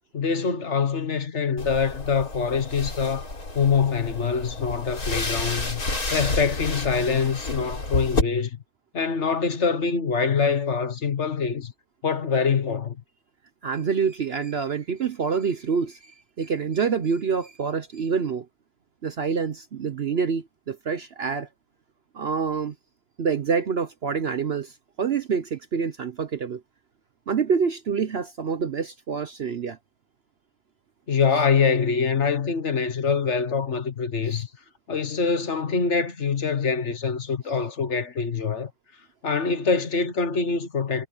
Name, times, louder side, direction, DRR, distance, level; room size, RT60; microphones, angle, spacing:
voice 1, 0.1-3.3 3.5-5.8 6.1-8.6 8.9-11.7 12.0-13.0 31.1-34.5 34.9-38.7 39.2-41.1, left 5 dB, 50° left, 1.5 m, -24 dB
sound 1, 1.6-8.2, left 2 dB, 70° left, 4.8 m, -30 dB
voice 2, 13.6-18.5 19.0-21.5 22.1-22.7 23.2-26.6 27.3-29.8 31.3-31.4 34.3-34.4, right 6 dB, 50° right, 0.9 m, -27 dB
omnidirectional pair, 1.6 m